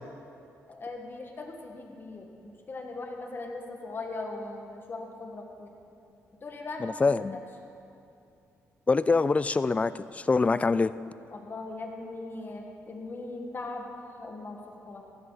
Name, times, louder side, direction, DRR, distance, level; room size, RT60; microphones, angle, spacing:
voice 1, 0.7-5.7 6.4-6.8 7.1-7.4 11.3-13.9 14.2-15.0, left 3 dB, 40° left, 2 dB, 1.8 m, -39 dB
voice 2, 6.8-7.4 8.9-10.9, left 4 dB, 20° left, 16 dB, 0.3 m, -24 dB
16.0 x 12.5 x 4.1 m, 2.6 s
cardioid pair, 95°, 6 cm